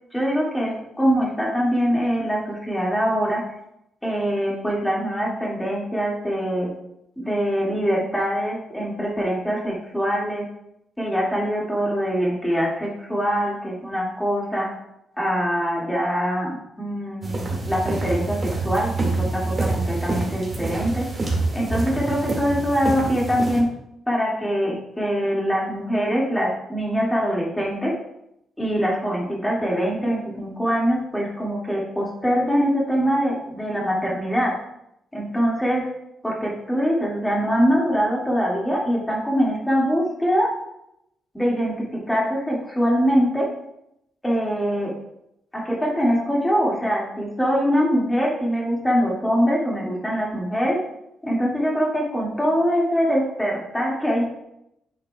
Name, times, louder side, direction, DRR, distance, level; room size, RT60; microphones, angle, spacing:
voice 1, 0.1-3.4 4.0-6.7 7.2-10.5 11.0-14.7 15.2-21.1 21.5-23.7 24.1-27.9 28.6-34.6 35.1-35.9 36.2-40.5 41.3-43.5 44.2-44.9 45.5-50.8 51.2-54.2, equal, 5° left, -4 dB, 2.1 m, -23 dB
sound 1, 17.2-23.6, right 2 dB, 25° right, 2.1 m, -26 dB
10.0 x 7.7 x 2.3 m, 0.81 s
cardioid pair, 155°, 0 cm